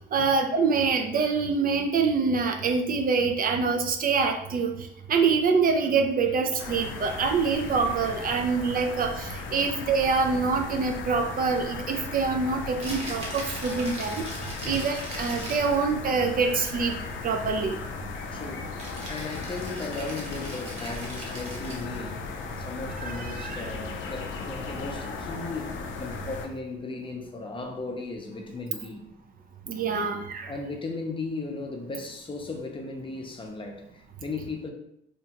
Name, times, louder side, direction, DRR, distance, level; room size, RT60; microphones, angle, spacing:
voice 1, 0.1-4.7 5.1-14.3 14.7-17.0 17.2-17.8 23.0-23.7 29.7-30.5, right 5 dB, 45° right, 5 dB, 0.4 m, -25 dB
sound 1, 6.6-26.5, left 4 dB, 75° left, 0.4 m, -37 dB
Rattle (instrument), 12.7-15.8 18.8-22.0, right 1 dB, 30° right, 1.0 m, -40 dB
voice 2, 18.3-29.0 30.5-34.7, left 3 dB, 25° left, 2 dB, 0.5 m, -36 dB
2.8 x 2.2 x 2.8 m, 0.76 s
cardioid pair, 90°, 20 cm